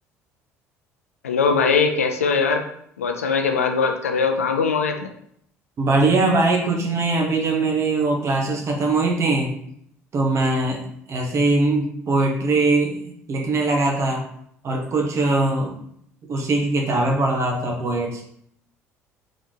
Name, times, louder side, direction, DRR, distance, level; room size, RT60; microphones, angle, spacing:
voice 1, 1.2-2.6 3.0-5.1, left 5 dB, 80° left, 6 dB, 0.4 m, -21 dB
voice 2, 5.8-9.5 10.1-10.8 11.1-13.0 13.3-14.3 14.6-15.8 16.3-18.2, right 2 dB, 40° right, 1 dB, 1.0 m, -21 dB
4.1 x 3.6 x 3.2 m, 0.69 s
figure-of-eight pair, 55°, 8 cm